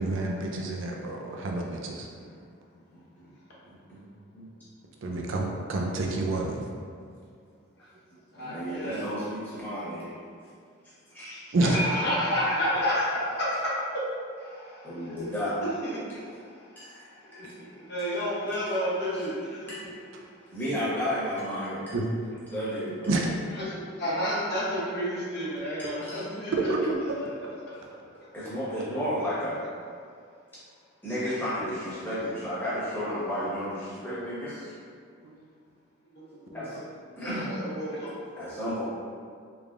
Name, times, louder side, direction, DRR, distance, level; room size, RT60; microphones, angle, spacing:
voice 1, 0.0-2.1 5.0-6.6 11.5-11.8 21.9-22.1 23.1-23.2 26.7-26.8 27.1-27.2 35.2-35.4, right 2 dB, 75° right, 0 dB, 0.4 m, -28 dB
voice 2, 2.9-3.3 3.6-4.1 4.3-4.5 8.3-10.1 11.1-11.5 14.8-15.5 16.8-17.0 19.7-19.8 20.5-21.9 22.5-23.3 26.0-26.2 28.3-29.6 31.0-34.7 36.5-36.8 37.2-37.5 38.4-38.8, equal, 10° left, -11 dB, 1.1 m, -32 dB
voice 3, 8.3-9.0 11.6-13.7 14.4-15.2 15.6-19.9 23.6-26.5 27.7-27.8 36.3-36.6 37.1-38.2, equal, 55° left, -7 dB, 0.8 m, -31 dB
3.4 x 3.3 x 2.5 m, 2.2 s
head